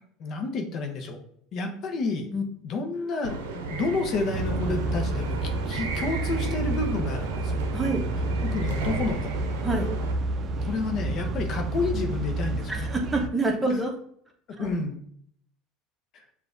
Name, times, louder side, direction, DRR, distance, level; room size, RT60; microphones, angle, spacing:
voice 1, 0.2-1.2 1.5-2.3 2.6-7.6 8.4-9.3 10.6-12.9 13.7-13.8 14.5-15.0 16.1-16.2, left 3 dB, 50° left, 4 dB, 0.7 m, -30 dB
sound 1, 3.2-10.1, right 4 dB, 90° right, 0.6 m, -34 dB
sound 2, 4.3-13.3, right 2 dB, 40° right, 0.4 m, -30 dB
voice 2, 7.7-8.0 9.6-9.9 12.7-13.9 14.6-14.8, right 2 dB, 10° right, 0 dB, 0.9 m, -27 dB
6.6 x 2.4 x 2.5 m, 0.64 s
supercardioid pair, 100°, 0 cm